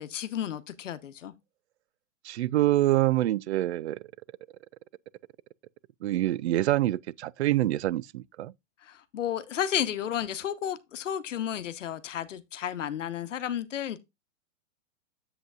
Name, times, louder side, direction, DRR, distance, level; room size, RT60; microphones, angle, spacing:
voice 1, 0.0-1.3 8.8-14.0, left 10 dB, 85° left, 1.0 m, -32 dB
voice 2, 2.2-4.0 6.0-8.5, right 15 dB, 65° right, 0.5 m, -26 dB
8.0 x 7.7 x 2.4 m
hypercardioid pair, 155°, 37 cm